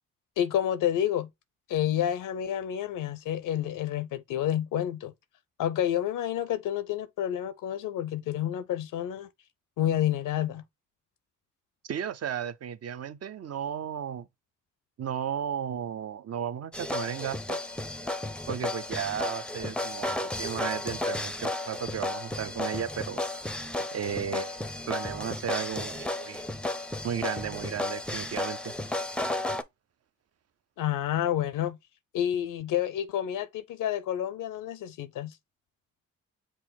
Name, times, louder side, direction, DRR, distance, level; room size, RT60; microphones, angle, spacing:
voice 1, 0.4-1.3 1.7-5.1 5.6-9.3 9.8-10.6 30.8-31.8 32.1-35.4, left 11 dB, 75° left, 0.5 m, -29 dB
voice 2, 11.8-14.3 15.0-17.6 18.5-23.2 23.9-26.4 27.0-28.7, right 8 dB, 50° right, 0.5 m, -34 dB
sound 1, 16.7-29.6, left 2 dB, 5° left, 0.5 m, -33 dB
5.7 x 2.1 x 3.7 m
supercardioid pair, 45°, 33 cm